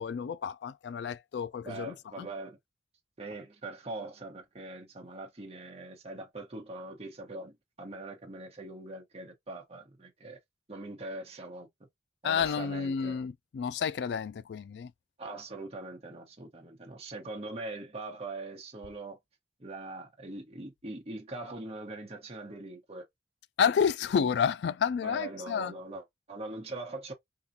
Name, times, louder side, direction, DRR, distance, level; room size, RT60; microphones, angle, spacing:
voice 1, 0.0-2.3 12.2-14.9 23.6-25.7, left 7 dB, 65° left, 0.3 m, -30 dB
voice 2, 1.6-2.6 3.2-10.4 10.7-11.7 12.2-13.2 15.2-19.2 19.6-23.0 25.0-27.1, right 2 dB, 35° right, 1.2 m, -42 dB
3.6 x 2.4 x 2.7 m
head